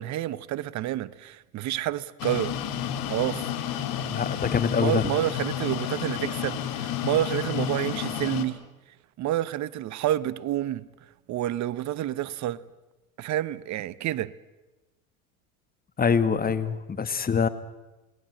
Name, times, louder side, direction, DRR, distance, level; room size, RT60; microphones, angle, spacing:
voice 1, 0.0-2.5 3.1-3.4 4.8-8.6 9.2-10.9 11.3-12.6 13.2-14.3, right 13 dB, 40° right, 1.1 m, -29 dB
sound 1, 2.2-8.5, left 9 dB, 50° left, 2.7 m, -31 dB
voice 2, 4.1-5.1 16.0-17.5, left 6 dB, 20° left, 1.7 m, -24 dB
29.0 x 19.0 x 7.8 m
hypercardioid pair, 95°, 43 cm